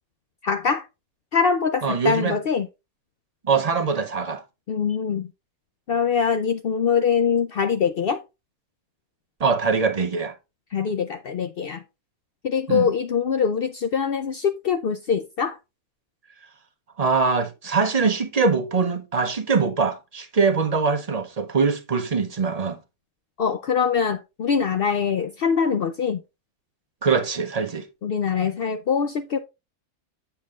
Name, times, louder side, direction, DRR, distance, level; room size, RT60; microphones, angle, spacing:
voice 1, 0.4-0.9 1.3-2.7 4.7-5.3 5.9-8.2 10.7-11.8 12.4-15.6 23.4-26.2 28.0-29.4, left 6 dB, 70° left, 0.5 m, -23 dB
voice 2, 1.8-2.4 3.5-4.4 9.4-10.3 12.7-12.9 17.0-22.8 27.0-27.8, right 5 dB, 40° right, 0.6 m, -22 dB
7.8 x 7.0 x 2.4 m
omnidirectional pair, 1.5 m